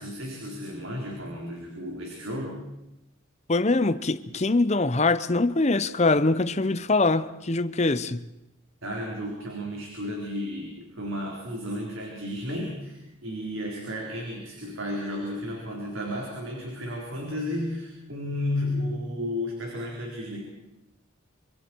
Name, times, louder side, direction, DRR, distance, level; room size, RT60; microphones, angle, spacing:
voice 1, 0.0-2.6 8.8-20.5, left 1 dB, 75° right, 4.1 m, -33 dB
voice 2, 3.5-8.3, left 3 dB, 35° left, 0.7 m, -23 dB
26.5 x 25.0 x 4.6 m
head